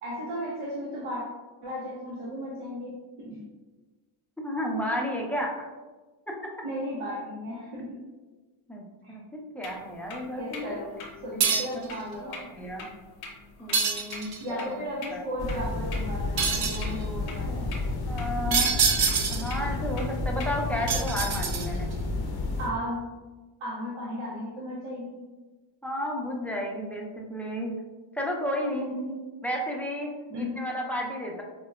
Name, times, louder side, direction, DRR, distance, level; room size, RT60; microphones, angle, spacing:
voice 1, 0.0-1.2 1.6-3.4 6.6-8.0 9.0-9.2 10.2-10.9 11.2-12.5 14.4-17.7 18.4-18.6 22.6-23.1 23.6-25.2 28.7-29.2 30.3-30.6, equal, 80° right, -5 dB, 0.8 m, -35 dB
voice 2, 4.4-5.6 8.7-8.8 9.3-10.8 11.2-11.9 12.2-12.3 12.5-12.9 13.6-14.8 15.1-15.2 18.1-18.7 19.1-21.9 25.8-27.8 28.1-28.9 29.4-31.4, equal, 5° left, -1 dB, 0.4 m, -32 dB
sound 1, 9.6-20.6, left 3 dB, 85° left, 0.8 m, -45 dB
sound 2, 11.4-11.9 13.7-14.5 16.4-16.9 18.5-19.6 20.9-21.9, right 6 dB, 50° right, 0.5 m, -26 dB
sound 3, 15.4-22.7, left 2 dB, 50° left, 0.6 m, -31 dB
4.6 x 2.1 x 2.2 m, 1.3 s
cardioid pair, 90°, 50 cm